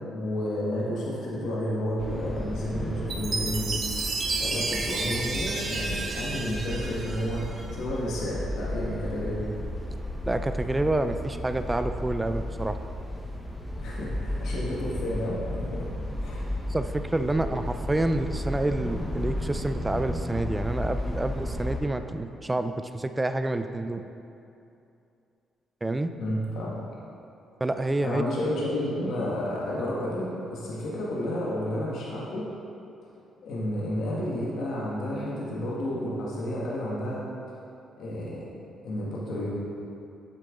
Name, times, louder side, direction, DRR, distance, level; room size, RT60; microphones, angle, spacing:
voice 1, 0.1-3.7 4.4-9.5 13.8-15.9 16.2-16.5 26.2-26.7 28.0-32.4 33.4-37.3 38.0-38.4 38.8-39.5, left 1 dB, 70° left, -6 dB, 1.5 m, -31 dB
sound 1, 2.0-21.8, left 1 dB, 10° left, 1.0 m, -34 dB
Chime, 3.1-7.7, right 3 dB, 45° right, 0.8 m, -32 dB
voice 2, 10.3-12.8 16.7-24.0 25.8-26.1 27.6-28.2, right 2 dB, 15° right, 9 dB, 0.4 m, -28 dB
7.7 x 6.6 x 3.7 m, 2.7 s
cardioid pair, 90°, 0 cm